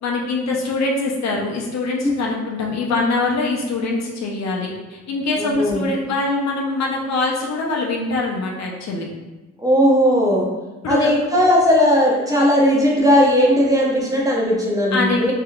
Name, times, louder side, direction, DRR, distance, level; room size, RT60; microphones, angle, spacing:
voice 1, 0.0-9.1 10.8-11.1 14.9-15.3, left 3 dB, 60° left, -2 dB, 0.7 m, -23 dB
voice 2, 5.4-5.8 9.6-10.5 10.9-15.3, equal, 10° right, -4 dB, 0.7 m, -17 dB
3.3 x 2.8 x 2.3 m, 1.1 s
cardioid pair, 90°, 30 cm